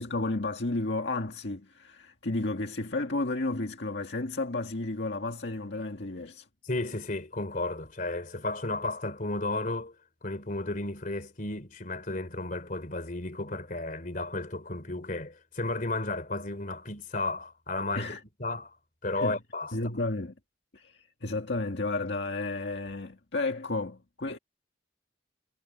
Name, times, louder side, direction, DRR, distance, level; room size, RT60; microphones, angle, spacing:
voice 1, 0.0-6.5 18.0-18.2 19.2-19.4 19.7-20.3 20.7-24.4, left 2 dB, 80° left, 1.8 m, -32 dB
voice 2, 6.6-9.9 10.2-18.8 19.0-19.8, left 2 dB, 50° left, 3.3 m, -33 dB
head